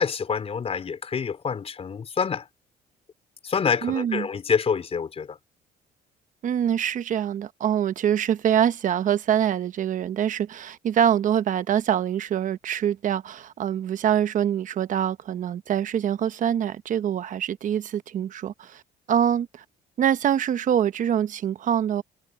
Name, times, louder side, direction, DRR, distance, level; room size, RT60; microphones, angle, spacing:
voice 1, 0.0-2.4 3.4-5.4, left 6 dB, 35° left, 4.6 m, -27 dB
voice 2, 3.8-4.3 6.4-18.8 19.1-19.6 20.0-22.0, right 9 dB, 50° right, 1.0 m, -24 dB
cardioid pair, 110°, 17 cm